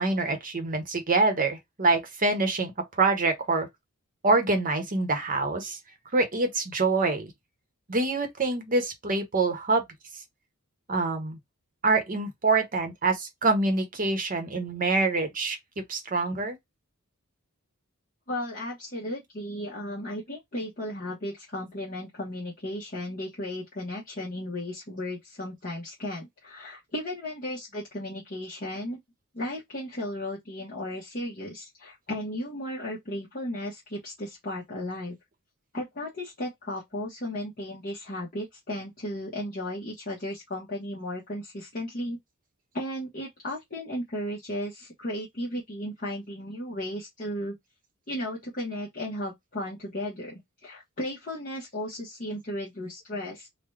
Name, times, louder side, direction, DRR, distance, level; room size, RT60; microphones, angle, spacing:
voice 1, 0.0-3.7 4.2-5.8 6.1-7.3 7.9-9.8 10.9-11.4 11.8-16.6, right 3 dB, 40° right, 1.0 m, -25 dB
voice 2, 18.3-29.0 29.3-35.2 35.7-42.2 42.7-47.5 48.1-53.5, left 1 dB, 40° left, 1.1 m, -35 dB
3.8 x 2.2 x 3.2 m
head